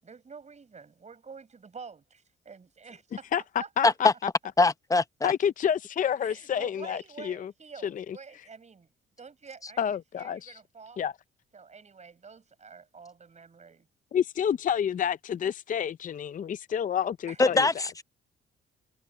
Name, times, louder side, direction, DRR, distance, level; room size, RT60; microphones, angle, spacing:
voice 1, 0.0-3.3 3.6-3.9 6.2-8.9 9.2-9.8 10.2-11.1 11.5-13.9 17.3-17.4, right 5 dB, 35° right, 5.5 m, -47 dB
voice 2, 3.8-4.1 5.2-7.5 7.8-8.0 9.8-10.6 11.0-11.1 14.1-17.7, left 8 dB, 40° left, 0.5 m, -29 dB
voice 3, 4.6-5.3 17.4-18.0, left 3 dB, 15° left, 0.9 m, -23 dB
cardioid pair, 90°, 20 cm